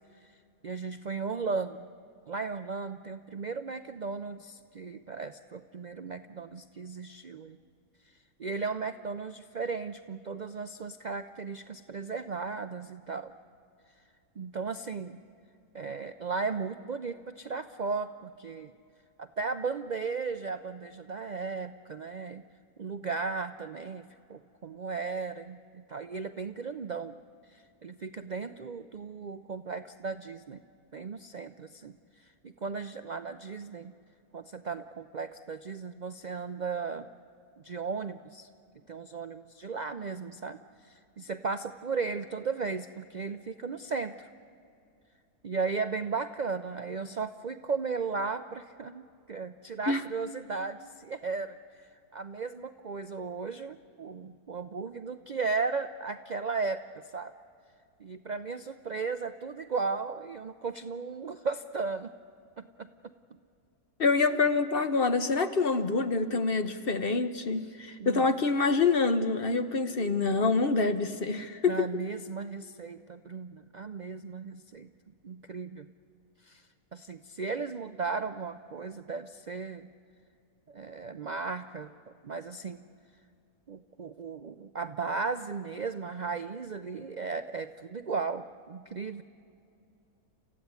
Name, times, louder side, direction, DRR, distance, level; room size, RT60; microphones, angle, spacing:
voice 1, 0.6-1.9 2.3-7.6 8.4-13.3 14.4-15.2 15.7-18.7 19.2-22.4 22.8-27.2 27.5-30.6 30.9-31.9 32.4-33.9 34.3-37.1 37.6-38.5 38.9-40.6 40.8-44.3 45.4-56.8 57.1-57.3 58.0-62.1 62.6-62.9 68.0-68.2 71.7-74.9 75.2-75.9 76.4-76.6 76.9-79.9 80.7-81.9 82.2-82.9 83.7-89.2, right 4 dB, 80° right, 10 dB, 0.4 m, -36 dB
voice 2, 64.0-72.0, left 4 dB, 40° left, 9 dB, 1.1 m, -26 dB
29.5 x 15.0 x 9.5 m, 2.5 s
omnidirectional pair, 1.7 m